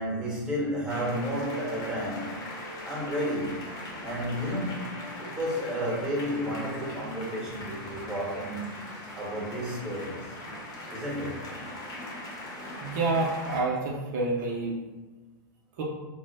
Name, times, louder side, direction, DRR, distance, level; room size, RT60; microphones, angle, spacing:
voice 1, 0.0-2.3 2.8-3.7 4.0-8.7 9.2-10.3 10.9-11.5, equal, 5° right, -5 dB, 1.1 m, -32 dB
sound 1, 0.9-13.6, left 1 dB, 30° left, 0.9 m, -40 dB
voice 2, 12.8-14.8 15.8-15.9, right 3 dB, 60° right, -2 dB, 0.6 m, -28 dB
3.3 x 2.1 x 3.2 m, 1.2 s
hypercardioid pair, 125°, 11 cm